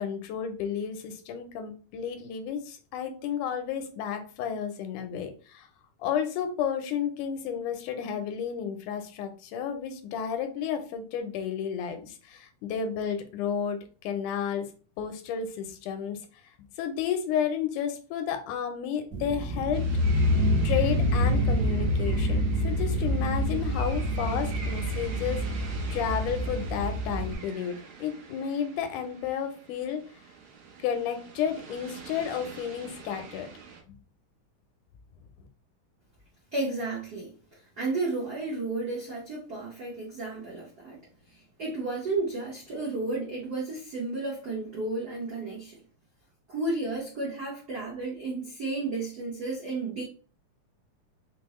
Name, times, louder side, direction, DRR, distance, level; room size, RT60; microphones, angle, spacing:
voice 1, 0.0-5.7 6.0-14.7 15.0-16.2 16.8-19.9 20.6-25.4 25.9-30.0 30.8-33.5 33.9-34.0, left 8 dB, 85° left, 7 dB, 2.2 m, -32 dB
sound 1, 19.1-27.3, equal, 45° right, 1.2 m, -27 dB
sound 2, 19.7-33.8, right 5 dB, 65° right, 1.3 m, -46 dB
voice 2, 36.5-41.0 41.3-45.7 46.5-50.0, right 3 dB, 85° right, -6 dB, 0.8 m, -33 dB
5.2 x 2.0 x 3.0 m, 0.38 s
omnidirectional pair, 3.5 m